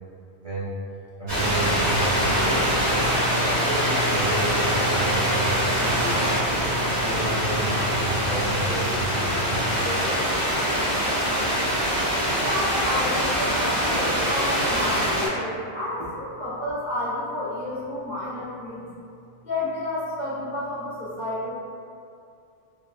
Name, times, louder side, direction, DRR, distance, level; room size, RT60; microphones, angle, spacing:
voice 1, 0.4-0.7 1.2-3.1 3.5-10.5, right 2 dB, 40° right, -11 dB, 0.5 m, -32 dB
sound 1, 1.3-15.3, equal, 85° right, 1.6 m, -23 dB
voice 2, 12.3-18.9 19.4-21.5, left 1 dB, 50° left, -9 dB, 0.7 m, -30 dB
3.4 x 2.1 x 2.4 m, 2.5 s
omnidirectional pair, 1.1 m